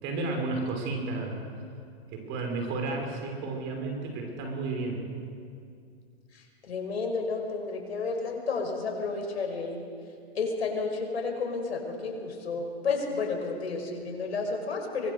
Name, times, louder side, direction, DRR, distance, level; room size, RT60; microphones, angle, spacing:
voice 1, 0.0-1.4 2.1-5.0, right 3 dB, 35° right, 2 dB, 5.8 m, -32 dB
voice 2, 6.3-9.8 10.3-15.1, left 4 dB, 80° left, 3 dB, 5.6 m, -31 dB
24.0 x 21.5 x 6.9 m, 2.3 s
hypercardioid pair, 130°, 32 cm